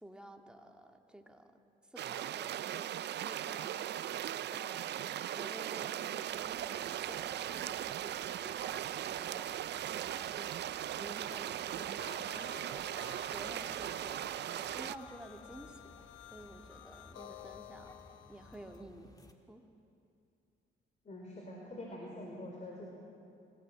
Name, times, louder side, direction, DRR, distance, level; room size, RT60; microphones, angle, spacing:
voice 1, 0.0-1.4 2.0-2.9 3.2-3.9 4.5-10.5 11.0-12.9 13.3-14.3 14.6-15.9 16.3-17.9 18.3-19.1 19.5-19.6, right 1 dB, 5° right, 3 dB, 1.9 m, -51 dB
sound 1, 2.0-15.0, right 11 dB, 60° right, 0.5 m, -38 dB
sound 2, 6.2-19.3, left 1 dB, 20° left, 2.0 m, -60 dB
sound 3, 12.0-18.8, left 12 dB, 80° left, 0.8 m, -53 dB
voice 2, 21.0-22.9, left 1 dB, 35° left, -2 dB, 4.2 m, -45 dB
25.5 x 16.0 x 7.6 m, 2.6 s
cardioid pair, 90°, 20 cm